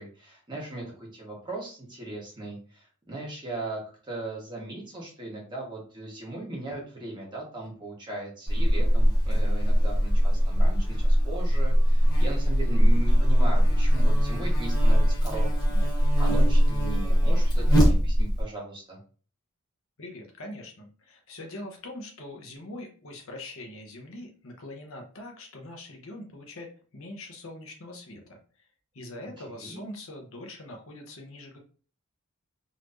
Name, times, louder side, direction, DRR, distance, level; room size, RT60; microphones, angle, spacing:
voice 1, 0.0-19.0 29.4-29.8, right 2 dB, 20° right, -3 dB, 1.3 m, -38 dB
Buzz, 8.5-18.4, equal, 20° left, 1.0 m, -21 dB
voice 2, 20.0-28.4 28.9-31.6, left 1 dB, 65° left, 2 dB, 0.9 m, -42 dB
4.1 x 3.1 x 2.6 m, 0.40 s
head